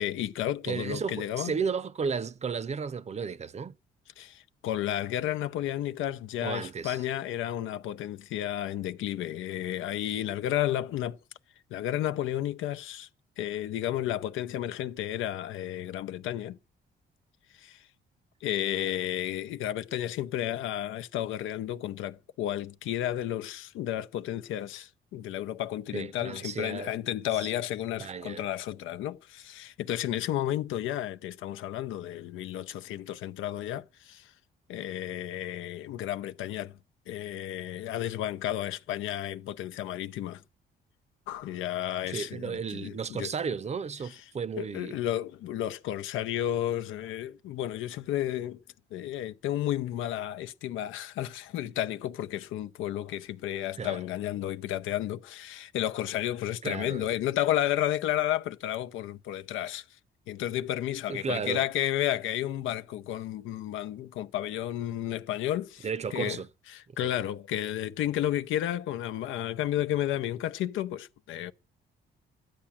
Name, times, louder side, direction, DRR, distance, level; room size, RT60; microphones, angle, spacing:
voice 1, 0.0-1.5 4.2-11.2 11.7-13.1 13.4-16.6 17.6-17.8 18.4-34.3 34.7-36.7 37.1-40.4 41.3-43.3 44.6-48.6 48.9-59.8 60.3-66.4 66.7-71.5, left 12 dB, 90° left, 0.7 m, -32 dB
voice 2, 0.7-3.7 6.4-7.0 25.9-27.0 27.3-27.5 28.0-28.4 42.0-45.0 53.8-54.0 56.6-57.1 61.1-61.6 65.8-66.5 67.0-67.1, right 6 dB, 35° right, 0.6 m, -34 dB
13.0 x 8.8 x 7.3 m
cardioid pair, 90°, 20 cm